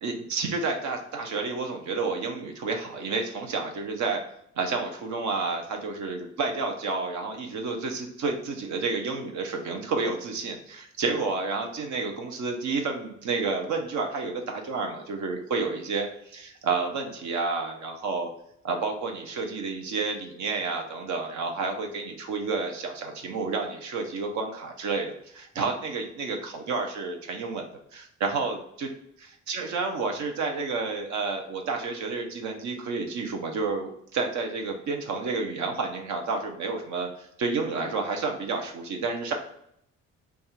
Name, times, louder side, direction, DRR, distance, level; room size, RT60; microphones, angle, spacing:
voice 1, 0.0-4.2 4.6-18.3 18.6-27.6 27.9-28.9 29.5-39.3, right 4 dB, 70° right, 3 dB, 0.7 m, -30 dB
3.4 x 2.4 x 4.2 m, 0.73 s
cardioid pair, 90°, 30 cm